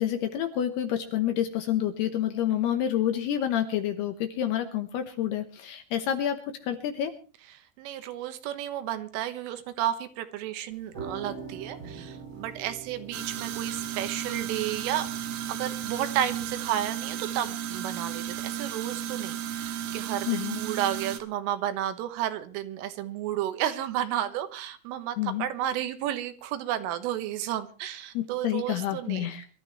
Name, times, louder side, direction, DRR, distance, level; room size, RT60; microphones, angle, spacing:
voice 1, 0.0-7.1 20.3-20.6 25.2-25.4 28.1-29.5, left 11 dB, 75° left, 8 dB, 2.6 m, -28 dB
voice 2, 7.5-15.1 15.5-29.3, right 11 dB, 85° right, 9 dB, 3.8 m, -32 dB
sound 1, 10.7-16.7, right 5 dB, 35° right, 2.2 m, -44 dB
sound 2, 13.1-21.2, right 10 dB, 70° right, 2.3 m, -34 dB
25.0 x 13.0 x 3.2 m, 0.36 s
omnidirectional pair, 5.7 m